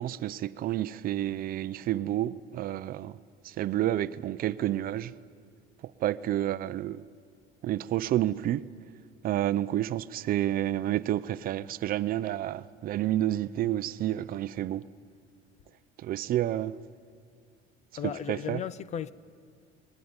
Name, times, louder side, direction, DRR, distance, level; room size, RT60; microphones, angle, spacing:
voice 1, 0.0-3.2 3.4-5.1 6.0-7.0 7.6-8.6 9.2-14.8 16.0-16.8 18.0-18.6, right 13 dB, 45° right, 0.6 m, -29 dB
voice 2, 18.0-19.1, left 9 dB, 35° left, 0.6 m, -35 dB
27.0 x 20.5 x 9.7 m
cardioid pair, 145°, 20 cm